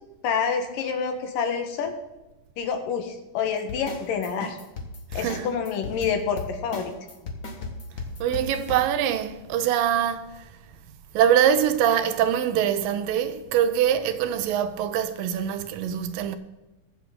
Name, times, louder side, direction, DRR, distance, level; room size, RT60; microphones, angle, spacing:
voice 1, 0.2-1.9 2.6-4.6 5.1-6.9, left 6 dB, 75° left, 2.9 m, -27 dB
sound 1, 3.7-8.8, left 3 dB, 45° left, 1.1 m, -35 dB
voice 2, 5.1-5.6 8.2-10.5 11.1-16.4, right 9 dB, 80° right, 2.4 m, -23 dB
22.0 x 7.4 x 3.9 m
omnidirectional pair, 4.0 m